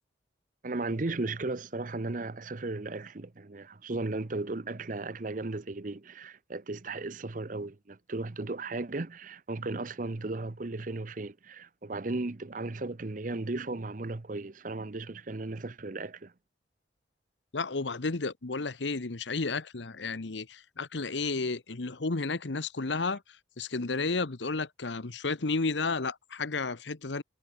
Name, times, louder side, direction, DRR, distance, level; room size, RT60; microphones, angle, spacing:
voice 1, 0.6-16.3, right 2 dB, 45° right, 0.8 m, -35 dB
voice 2, 17.5-23.2 23.6-27.2, left 3 dB, 75° left, 1.1 m, -32 dB
head